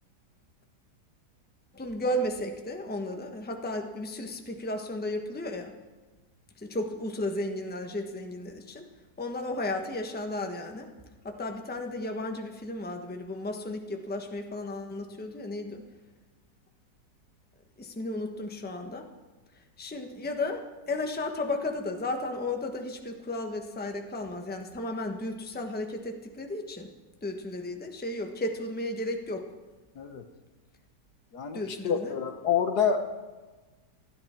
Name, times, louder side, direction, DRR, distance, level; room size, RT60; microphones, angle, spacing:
voice 1, 1.7-5.7 6.6-8.8 9.2-10.9 11.2-15.8 17.8-19.1 19.6-26.9 27.2-29.5 31.5-32.2, left 1 dB, 5° left, 3 dB, 1.1 m, -34 dB
voice 2, 31.3-33.1, left 7 dB, 65° left, 7 dB, 1.6 m, -28 dB
28.5 x 10.5 x 4.5 m, 1.3 s
omnidirectional pair, 1.9 m